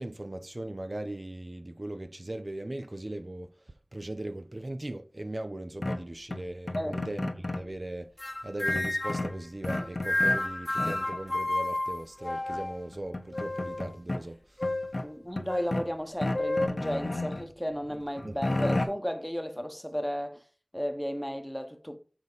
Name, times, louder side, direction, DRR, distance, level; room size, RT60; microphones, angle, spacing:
voice 1, 0.0-8.1 8.4-14.7 18.2-18.4, right 1 dB, 55° right, 0.5 m, -39 dB
sound 1, 5.8-7.7 8.7-10.4 10.8-11.2 12.5-12.6 12.9-14.2 14.6-15.9 16.2-17.5 17.9-18.9, left 2 dB, 80° left, 0.8 m, -33 dB
sound 2, 8.2-9.3 9.7-12.9 13.3-13.9 14.6-15.0 15.5-15.7 16.3-16.7, left 1 dB, 50° left, 0.4 m, -31 dB
voice 2, 15.0-20.4 20.7-22.0, equal, 5° left, 0.9 m, -34 dB
6.9 x 4.2 x 4.0 m
wide cardioid pair, 40°, 0 cm